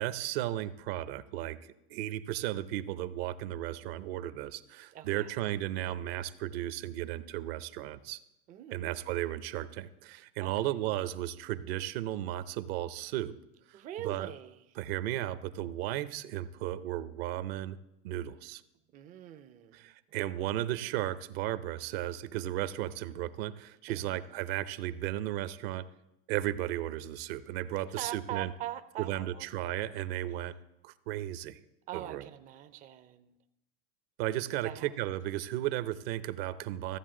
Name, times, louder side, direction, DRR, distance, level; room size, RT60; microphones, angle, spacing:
voice 1, 0.0-1.6 1.9-8.2 8.7-13.3 13.7-14.3 14.8-17.8 18.0-18.6 19.7-25.9 26.3-28.5 29.0-30.5 30.8-31.6 31.9-32.2 34.2-37.0, right 13 dB, 65° right, 14 dB, 0.7 m, -35 dB
voice 2, 4.9-5.3 8.5-8.8 10.4-10.7 13.7-14.6 18.9-19.9 23.9-24.2 27.9-29.5 31.9-33.4 34.6-34.9, right 12 dB, 25° right, 10 dB, 0.4 m, -42 dB
14.5 x 7.4 x 3.8 m, 0.86 s
supercardioid pair, 125°, 33 cm